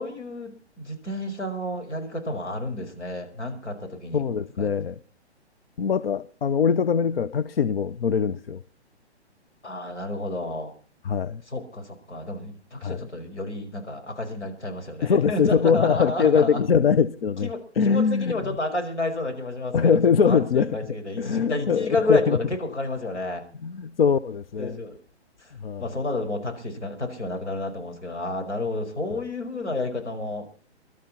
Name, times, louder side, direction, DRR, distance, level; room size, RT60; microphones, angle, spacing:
voice 1, 0.0-4.8 9.6-10.7 11.5-16.6 17.4-23.4 24.6-25.0 25.4-25.5 25.8-30.6, left 2 dB, 80° left, 5.2 m, -30 dB
voice 2, 4.1-5.0 5.8-8.6 11.0-11.4 12.8-13.0 15.0-17.5 17.8-18.4 19.7-20.8 21.2-22.4 23.6-24.8 25.6-25.9, left 6 dB, 60° left, 0.7 m, -22 dB
24.0 x 12.5 x 4.2 m
figure-of-eight pair, 135°, 34 cm